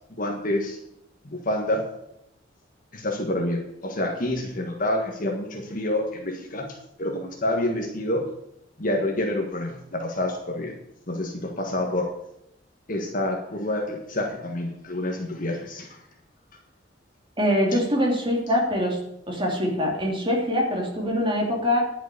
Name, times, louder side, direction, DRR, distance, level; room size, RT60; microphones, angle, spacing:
voice 1, 0.2-0.8 1.2-1.8 2.9-8.2 8.8-10.7 11.1-12.1 12.9-16.0 17.7-17.8, left 1 dB, 45° left, 1 dB, 1.6 m, -28 dB
voice 2, 17.4-19.0 19.3-21.9, equal, 25° right, -1 dB, 2.9 m, -23 dB
11.0 x 6.1 x 8.3 m, 0.78 s
head